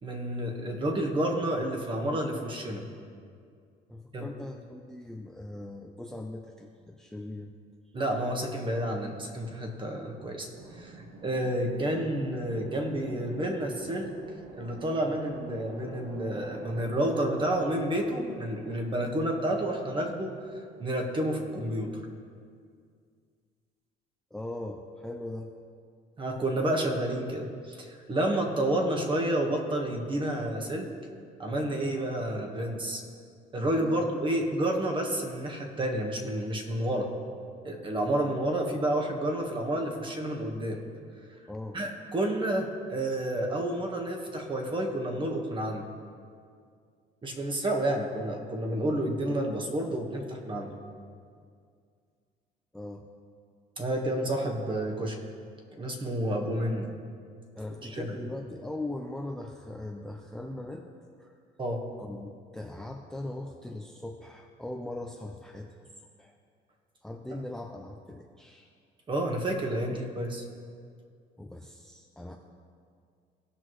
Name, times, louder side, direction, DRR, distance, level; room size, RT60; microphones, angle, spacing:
voice 1, 0.0-2.8 4.1-4.3 7.9-14.1 14.6-20.4 20.8-22.0 26.2-30.9 31.4-33.0 33.5-37.1 37.6-40.8 41.7-45.9 47.2-50.7 53.8-55.2 55.7-56.9 57.8-58.2 61.6-61.8 69.1-70.4, right 1 dB, 30° right, 2 dB, 1.4 m, -30 dB
voice 2, 3.9-7.5 24.3-25.5 33.8-34.0 41.5-41.8 52.7-53.1 57.5-60.9 61.2-61.3 62.0-65.7 66.0-66.4 67.0-68.7 71.4-72.4, left 1 dB, 5° left, 3 dB, 0.5 m, -40 dB
sound 1, 10.5-21.1, right 2 dB, 75° right, 1.0 m, -48 dB
17.0 x 6.0 x 3.2 m, 2.2 s
cardioid pair, 110°, 17 cm